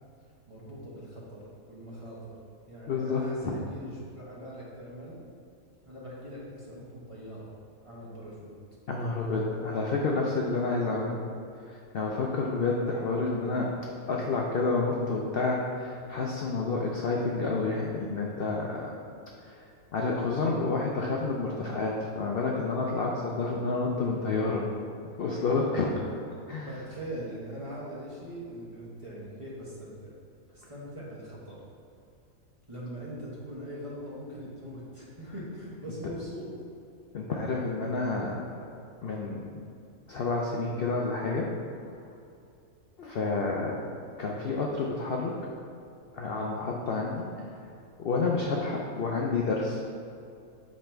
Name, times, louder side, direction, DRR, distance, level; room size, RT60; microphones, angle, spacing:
voice 1, 0.5-2.4 2.7-5.2 5.8-7.5 7.8-8.5 26.6-30.1 30.5-31.6 32.7-36.5, equal, 25° right, -7 dB, 1.2 m, -41 dB
voice 2, 2.9-3.6 8.9-11.2 11.7-13.8 14.1-18.9 19.5-19.6 19.9-24.6 25.2-25.9 26.5-26.7 37.1-38.4 39.0-39.5 40.1-41.5 43.0-43.8 44.2-45.4 46.1-47.2 48.0-49.8, left 3 dB, 60° left, -2 dB, 0.6 m, -29 dB
7.6 x 3.4 x 4.4 m, 2.5 s
omnidirectional pair, 1.5 m